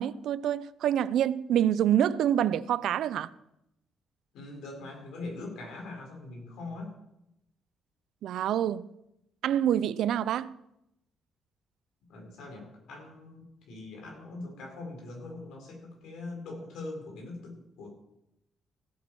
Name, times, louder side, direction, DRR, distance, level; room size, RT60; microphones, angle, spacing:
voice 1, 0.0-3.3 8.2-8.9 9.4-10.5, right 10 dB, 75° right, 0.5 m, -26 dB
voice 2, 4.3-6.9 12.1-17.9, left 2 dB, 85° left, 4.7 m, -42 dB
16.5 x 8.4 x 4.7 m
cardioid pair, 90°, 0 cm